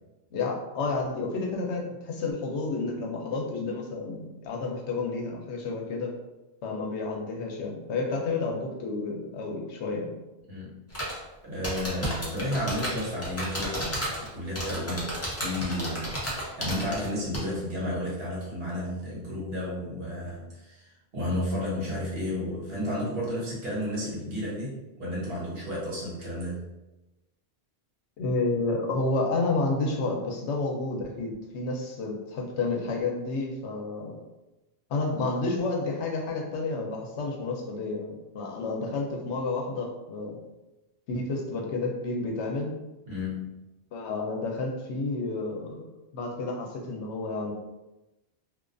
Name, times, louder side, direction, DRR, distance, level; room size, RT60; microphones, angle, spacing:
voice 1, 0.3-6.1 6.6-10.1 28.2-34.2 34.9-40.4 41.1-42.7 43.9-45.9 46.1-47.5, left 3 dB, 90° left, 1 dB, 0.9 m, -30 dB
voice 2, 10.5-10.8 11.4-26.7 43.1-43.5, left 1 dB, 60° right, -6 dB, 1.1 m, -32 dB
sound 1, 10.9-11.2 11.6-14.3 14.6-17.1 17.3-17.4, equal, 20° left, 0.5 m, -32 dB
2.4 x 2.3 x 2.4 m, 1.0 s
omnidirectional pair, 1.1 m